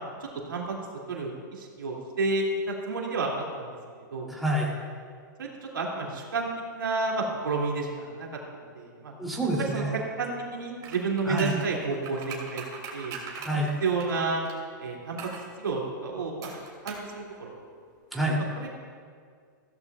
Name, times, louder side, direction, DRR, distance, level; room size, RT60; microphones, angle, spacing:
voice 1, 0.2-0.7 1.1-3.3 3.6-4.3 5.4-6.5 6.7-8.3 8.5-9.1 9.5-12.6 12.9-13.2 13.5-14.4 14.8-15.2 15.6-16.5 16.8-17.5 18.6-18.7, right 3 dB, 85° right, -2 dB, 2.5 m, -31 dB
voice 2, 4.3-4.7 9.2-9.9 11.3-11.5 13.4-13.7 18.1-18.4, right 1 dB, ahead, -4 dB, 2.8 m, -27 dB
sound 1, 10.8-14.6 15.2-15.5 16.4-17.1 17.3-17.4, right 6 dB, 35° right, 2.5 m, -40 dB
15.5 x 13.0 x 2.4 m, 2.1 s
hypercardioid pair, 115°, 11 cm